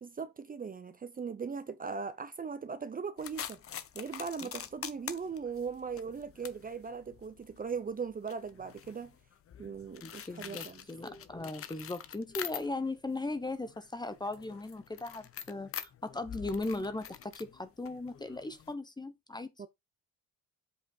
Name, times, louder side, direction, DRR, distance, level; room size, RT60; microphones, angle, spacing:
voice 1, 0.0-3.6 3.9-9.1 9.6-10.8 19.6-19.7, right 5 dB, 25° right, 0.7 m, -39 dB
sound 1, 3.2-13.0 13.3-18.7, left 9 dB, 40° left, 0.8 m, -46 dB
voice 2, 10.0-19.5, left 2 dB, 10° left, 0.9 m, -38 dB
8.0 x 5.0 x 4.2 m
cardioid pair, 120°, 35 cm